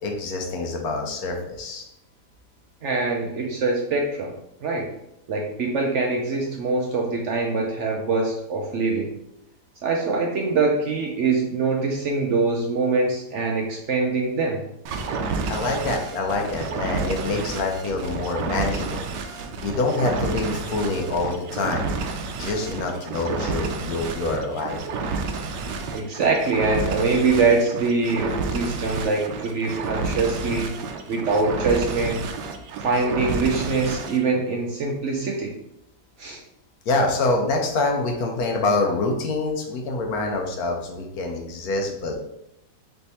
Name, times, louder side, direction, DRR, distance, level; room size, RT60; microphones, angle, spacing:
voice 1, 0.0-1.8 15.5-21.9 22.4-24.8 36.9-42.1, left 2 dB, 65° left, 2 dB, 1.1 m, -26 dB
voice 2, 2.8-4.3 4.6-4.9 5.3-9.1 9.8-14.6 25.9-30.7 31.1-32.2 32.8-35.5 36.2-36.4, right 3 dB, 65° right, 0 dB, 0.7 m, -23 dB
sound 1, 14.9-34.2, right 4 dB, 85° right, 1.2 m, -30 dB
3.4 x 3.4 x 4.1 m, 0.81 s
omnidirectional pair, 1.8 m